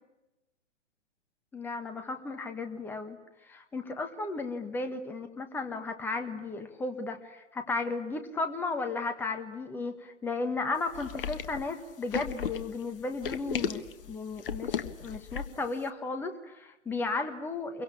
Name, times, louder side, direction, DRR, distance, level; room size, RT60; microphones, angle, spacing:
voice 1, 1.5-17.8, left 3 dB, 5° left, 6 dB, 1.4 m, -34 dB
sound 1, 10.9-15.7, left 8 dB, 45° left, 1.5 m, -35 dB
27.5 x 23.5 x 8.5 m, 1.0 s
figure-of-eight pair, 135°, 38 cm